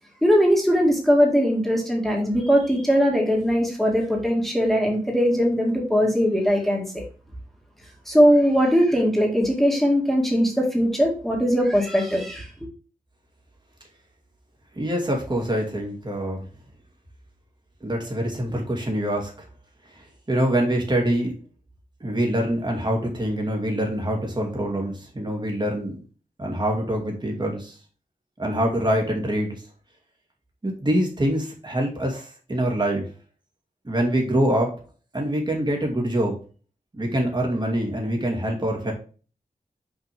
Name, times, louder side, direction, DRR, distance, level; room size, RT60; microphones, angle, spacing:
voice 1, 0.2-7.0 8.1-12.5, equal, ahead, -1 dB, 2.1 m, -20 dB
voice 2, 14.8-16.5 17.8-19.3 20.3-21.3 22.0-26.0 26.4-27.7 28.4-29.6 30.6-33.0 33.8-34.7 35.1-36.3 36.9-38.9, right 1 dB, 30° right, 0 dB, 2.4 m, -25 dB
6.1 x 5.1 x 3.5 m, 0.37 s
wide cardioid pair, 80°, 15 cm